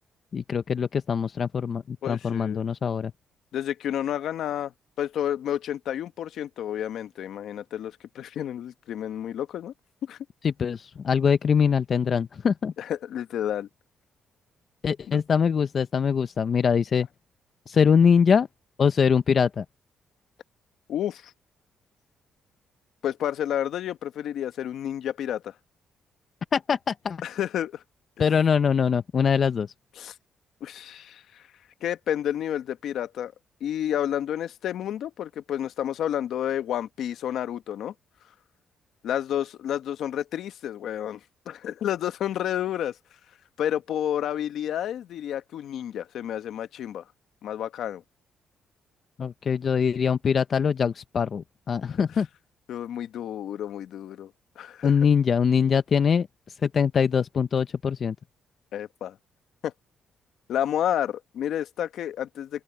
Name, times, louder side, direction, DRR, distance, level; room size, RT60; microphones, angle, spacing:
voice 1, 0.3-3.1 10.4-12.7 14.8-17.1 17.7-18.5 18.8-19.6 26.5-27.2 28.2-29.7 49.2-52.3 54.8-58.2, left 6 dB, 50° left, 0.7 m, -23 dB
voice 2, 2.0-2.6 3.5-4.7 5.0-9.7 10.0-10.2 12.8-13.7 15.1-15.2 20.9-21.3 23.0-25.5 27.2-27.8 30.0-30.1 30.6-31.4 31.8-33.3 33.6-37.9 39.0-41.2 41.5-43.0 43.6-47.0 47.4-48.0 52.7-54.3 54.6-54.9 58.7-59.2 59.6-59.7 60.5-62.6, left 10 dB, 75° left, 1.3 m, -30 dB
open air
cardioid pair, 90°, 0 cm